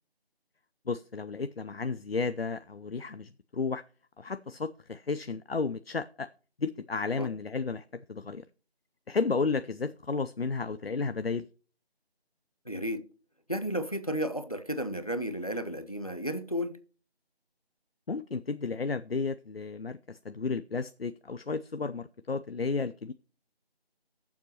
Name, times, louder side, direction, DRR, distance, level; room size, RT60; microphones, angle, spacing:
voice 1, 0.9-3.8 4.2-6.3 6.6-8.5 9.1-11.5 18.1-23.1, left 4 dB, 65° left, 0.6 m, -33 dB
voice 2, 12.7-13.0 13.5-16.8, equal, 35° left, 0.7 m, -33 dB
19.0 x 7.2 x 3.0 m
figure-of-eight pair, 175°, 32 cm